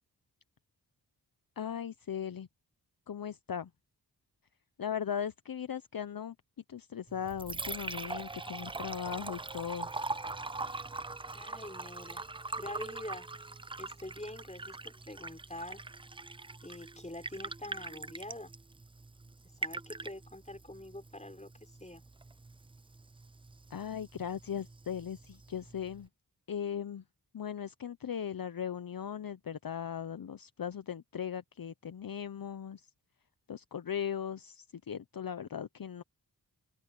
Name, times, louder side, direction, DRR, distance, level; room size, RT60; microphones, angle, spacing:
voice 1, 1.6-2.5 3.1-3.7 4.8-6.4 6.7-9.9 23.7-26.1 26.5-27.0 27.3-32.9 33.5-36.0, left 8 dB, 55° left, 0.8 m, -38 dB
Liquid, 7.1-26.1, right 3 dB, 15° right, 0.4 m, -43 dB
voice 2, 11.3-12.3 12.6-13.3 13.8-15.8 16.6-18.5 19.6-22.0, left 1 dB, 15° left, 6.0 m, -45 dB
cardioid pair, 45°, 41 cm